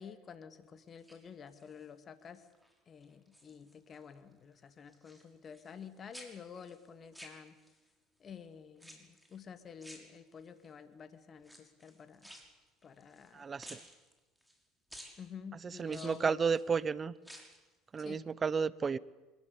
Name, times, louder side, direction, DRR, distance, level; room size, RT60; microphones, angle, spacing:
voice 1, 0.0-2.4 2.9-7.6 8.2-12.3 12.8-13.5 15.2-16.4 18.0-18.2, left 7 dB, 40° left, 2.5 m, -50 dB
sound 1, 0.9-1.9 2.3-2.7 3.0-4.1 4.3-5.9 6.1-7.9 8.8-9.4 9.8-10.7 11.4-13.3 13.6-14.6 14.9-15.2 15.9-16.7 17.2-17.7 18.0-18.1, equal, 5° right, 6.0 m, -54 dB
voice 2, 13.3-13.8 15.6-17.1 17.9-19.0, right 5 dB, 30° right, 1.0 m, -32 dB
25.0 x 21.5 x 8.7 m
supercardioid pair, 85°, 0 cm